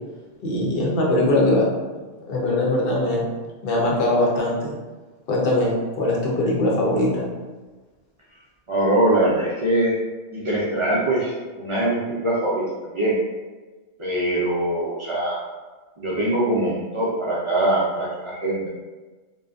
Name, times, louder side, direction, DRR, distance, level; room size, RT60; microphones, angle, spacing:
voice 1, 0.4-1.7 2.3-3.3 3.6-4.7 5.3-5.7 6.0-7.2, left 1 dB, 65° left, -3 dB, 0.8 m, -21 dB
voice 2, 8.7-9.9 10.3-13.2 14.0-15.4 16.0-18.7, right 1 dB, 50° right, -6 dB, 0.3 m, -22 dB
2.6 x 2.1 x 2.4 m, 1.3 s
omnidirectional pair, 1.1 m